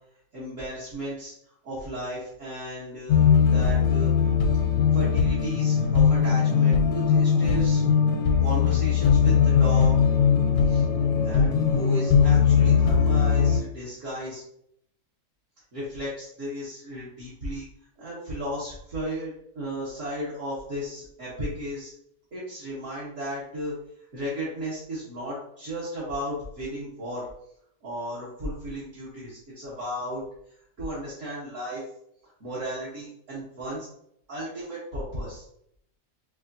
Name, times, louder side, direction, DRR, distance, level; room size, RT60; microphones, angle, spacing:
voice 1, 0.3-1.3 1.6-4.1 4.9-7.8 8.4-10.1 10.7-10.8 11.2-14.4 15.7-17.7 18.0-21.9 22.3-23.8 24.1-27.3 27.8-30.2 30.8-31.8 32.4-33.9 34.3-35.4, equal, 55° right, -9 dB, 1.5 m, -34 dB
sound 1, 3.1-13.6, left 6 dB, 80° left, 1.1 m, -20 dB
4.8 x 2.5 x 2.7 m, 0.73 s
omnidirectional pair, 1.6 m